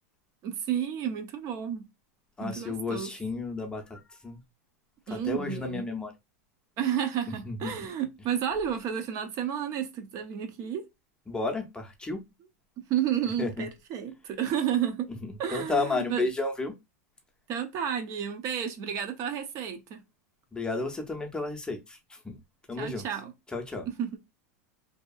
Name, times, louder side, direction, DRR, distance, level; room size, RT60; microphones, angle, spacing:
voice 1, 0.4-1.9 2.4-3.1 5.1-5.9 6.8-10.8 12.8-15.1 15.4-16.2 17.5-20.0 22.8-23.3 23.9-24.2, right 9 dB, 45° right, 0.6 m, -31 dB
voice 2, 2.4-4.4 5.1-6.1 7.5-7.7 11.3-12.2 13.4-13.7 15.2-16.7 20.5-22.4 22.7-23.1 23.5-23.9, left 3 dB, 10° left, 0.6 m, -32 dB
2.7 x 2.3 x 2.3 m
hypercardioid pair, 120°, 8 cm